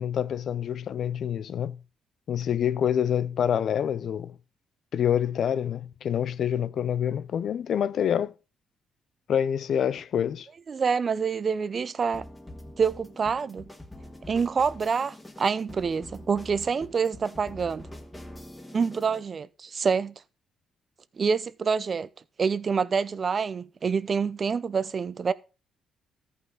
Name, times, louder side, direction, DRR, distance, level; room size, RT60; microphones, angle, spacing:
voice 1, 0.0-1.8 2.3-4.4 4.9-8.3 9.3-10.5, left 9 dB, 65° left, 0.4 m, -27 dB
voice 2, 10.7-12.3 12.8-13.7 14.3-17.9 18.7-20.1 21.2-22.1 22.4-25.3, right 5 dB, 40° right, 0.6 m, -27 dB
sound 1, 12.1-19.3, left 1 dB, 10° left, 1.6 m, -45 dB
13.5 x 5.6 x 3.8 m
cardioid pair, 90°, 0 cm